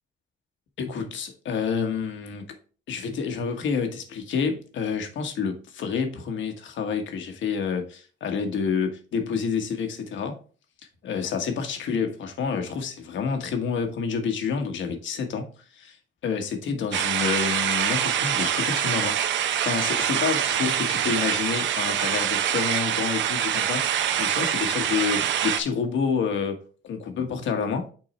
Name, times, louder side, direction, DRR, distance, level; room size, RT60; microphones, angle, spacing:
voice 1, 0.8-2.5 2.9-10.4 11.0-16.0 16.2-19.2 19.6-26.6 26.8-27.9, left 6 dB, 75° left, 1.3 m, -28 dB
sound 1, 16.9-25.6, right 9 dB, 70° right, 0.6 m, -25 dB
6.1 x 3.9 x 4.3 m
cardioid pair, 90°, 20 cm